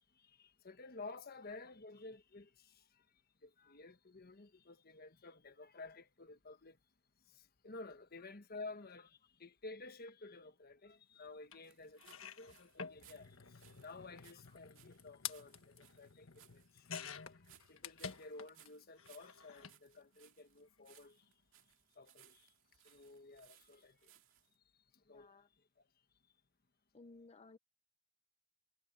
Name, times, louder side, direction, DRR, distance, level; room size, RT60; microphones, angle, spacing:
voice 1, 0.2-2.9 3.4-6.8 7.3-13.6 13.8-17.3 17.7-21.2 22.0-22.5 22.8-24.1 25.1-25.3, left 3 dB, 45° left, 1.2 m, -53 dB
sound 1, 11.5-11.6 12.0-18.7 19.0-19.8 20.8-21.0 21.2-21.3, left 7 dB, 75° left, 1.5 m, -50 dB
sound 2, 11.6-24.5, right 12 dB, 70° right, 2.3 m, -67 dB
voice 2, 25.1-25.5 26.9-27.6, left 3 dB, 30° left, 0.7 m, -58 dB
head